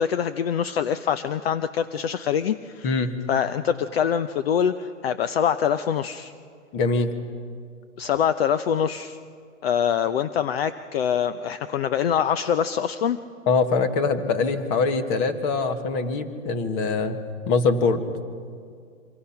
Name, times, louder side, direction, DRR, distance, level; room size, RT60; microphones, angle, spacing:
voice 1, 0.0-2.9 3.3-6.3 8.0-9.2 9.6-13.2, left 8 dB, 50° left, 11 dB, 0.8 m, -24 dB
voice 2, 6.7-7.1 13.5-17.2 17.5-18.0, left 4 dB, 25° left, 9 dB, 1.4 m, -23 dB
27.0 x 25.0 x 5.8 m, 2.2 s
hypercardioid pair, 155°, 39 cm